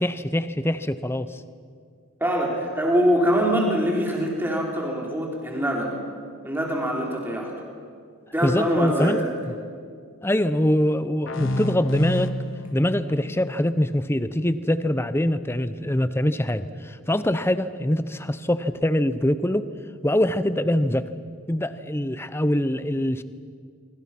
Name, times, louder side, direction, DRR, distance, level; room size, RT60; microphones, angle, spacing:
voice 1, 0.0-1.4 8.4-9.3 10.2-12.3 12.7-19.7 20.0-21.1 21.5-23.2, left 1 dB, 10° left, 13 dB, 0.6 m, -23 dB
voice 2, 2.2-6.0 6.4-7.5 8.3-9.2, equal, 10° right, -2 dB, 3.9 m, -23 dB
sound 1, 11.3-14.7, left 1 dB, 55° left, 1.1 m, -31 dB
25.5 x 25.0 x 6.0 m, 2.2 s
head